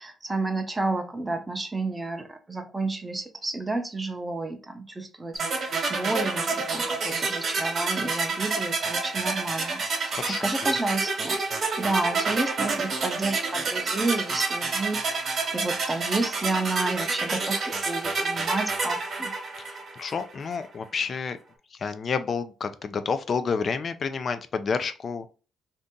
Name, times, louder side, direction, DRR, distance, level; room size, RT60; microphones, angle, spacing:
voice 1, 0.0-11.4 11.8-19.3, right 2 dB, 20° right, 6 dB, 0.7 m, -31 dB
sound 1, 5.4-20.3, right 4 dB, 55° right, 1.2 m, -28 dB
voice 2, 10.2-10.7 19.6-21.4 21.8-25.3, left 5 dB, 45° left, 11 dB, 0.4 m, -30 dB
2.7 x 2.5 x 3.6 m, 0.34 s
cardioid pair, 90°, 0 cm